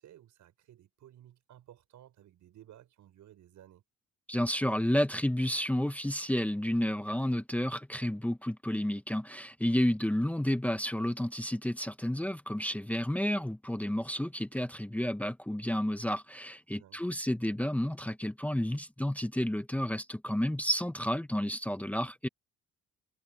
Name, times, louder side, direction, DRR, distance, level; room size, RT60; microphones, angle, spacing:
voice 1, 0.0-3.8 16.7-17.1, right 12 dB, 75° right, 5.4 m, -56 dB
voice 2, 4.3-22.3, equal, 5° left, 1.2 m, -31 dB
cardioid pair, 90°, 30 cm